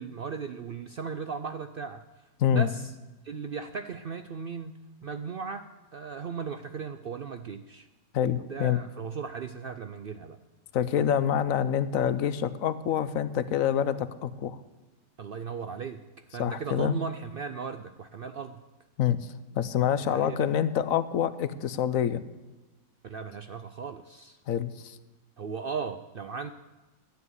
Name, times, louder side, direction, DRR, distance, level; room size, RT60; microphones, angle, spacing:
voice 1, 0.0-2.0 2.5-2.9 3.2-7.9 8.3-10.4 10.9-11.2 15.2-16.0 16.3-18.6 20.0-20.5 23.0-24.4 25.4-26.5, right 5 dB, 60° right, 9 dB, 0.6 m, -37 dB
voice 2, 8.1-8.8 10.7-14.6 16.4-16.9 19.0-19.2 19.5-22.2 24.5-25.0, left 9 dB, 70° left, 14 dB, 1.1 m, -26 dB
13.0 x 9.7 x 8.0 m, 1.1 s
omnidirectional pair, 1.5 m